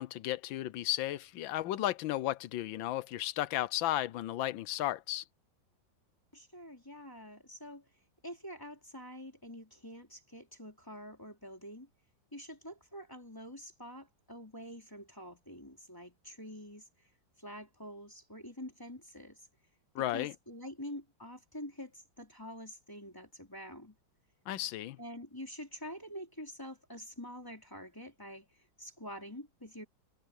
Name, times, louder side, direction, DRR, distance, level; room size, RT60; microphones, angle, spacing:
voice 1, 0.0-5.2 19.9-20.3 24.5-25.0, left 14 dB, 80° left, 1.5 m, -34 dB
voice 2, 6.3-7.9 8.2-11.9 12.3-17.1 17.4-19.4 20.0-24.0 25.0-29.9, equal, 10° left, 3.6 m, -47 dB
omnidirectional pair, 2.1 m